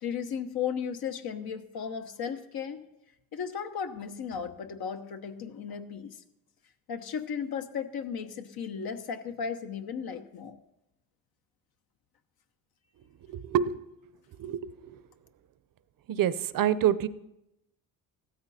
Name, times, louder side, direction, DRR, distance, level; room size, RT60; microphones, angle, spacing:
voice 1, 0.0-2.8 3.3-6.1 6.9-10.6, left 7 dB, 70° left, 7 dB, 1.1 m, -35 dB
voice 2, 13.3-13.8 14.4-15.0 16.1-17.1, right 10 dB, 60° right, 16 dB, 0.7 m, -27 dB
15.0 x 13.5 x 4.2 m, 0.88 s
cardioid pair, 115°, 38 cm